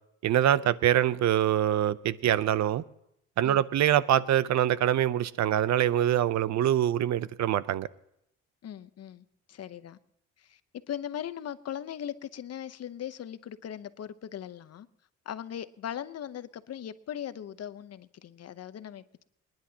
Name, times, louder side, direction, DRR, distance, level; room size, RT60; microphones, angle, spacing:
voice 1, 0.2-2.8 3.4-7.9, right 11 dB, 65° right, 0.7 m, -24 dB
voice 2, 8.6-10.0 10.4-10.6 10.9-14.9 15.3-19.2, left 10 dB, 55° left, 0.8 m, -39 dB
27.0 x 10.5 x 2.9 m
cardioid pair, 90°, 30 cm